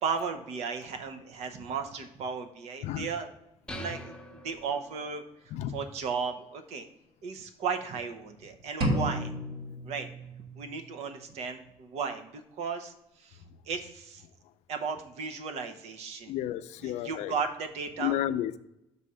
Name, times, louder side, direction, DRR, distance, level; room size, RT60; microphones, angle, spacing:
voice 1, 0.0-3.3 3.7-5.2 5.7-6.9 7.2-9.3 9.8-10.1 10.6-14.2 14.7-16.3 16.8-18.1, right 5 dB, 75° right, 7 dB, 0.8 m, -35 dB
sound 1, 3.7-5.3, equal, 5° left, 0.6 m, -43 dB
sound 2, 8.8-10.8, right 1 dB, 55° right, 1.3 m, -32 dB
voice 2, 16.3-17.3 18.0-18.6, left 12 dB, 90° left, 12 dB, 0.4 m, -31 dB
6.2 x 4.1 x 5.5 m, 0.86 s
cardioid pair, 145°, 11 cm